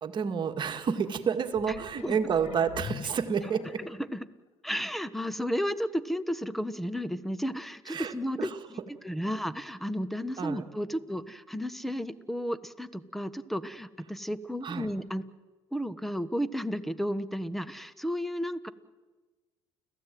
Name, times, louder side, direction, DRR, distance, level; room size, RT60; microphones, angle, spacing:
voice 1, 0.0-3.8 7.9-8.6 10.4-10.6 14.6-14.9, right 6 dB, 40° right, 6 dB, 2.1 m, -30 dB
sound 1, 1.5-4.1 4.7-4.8, left 10 dB, 60° left, 1.1 m, -44 dB
voice 2, 3.8-4.2 4.6-8.5 9.0-15.2 15.7-18.7, equal, ahead, 14 dB, 1.3 m, -33 dB
30.0 x 15.5 x 9.3 m, 1.3 s
supercardioid pair, 90°, 12 cm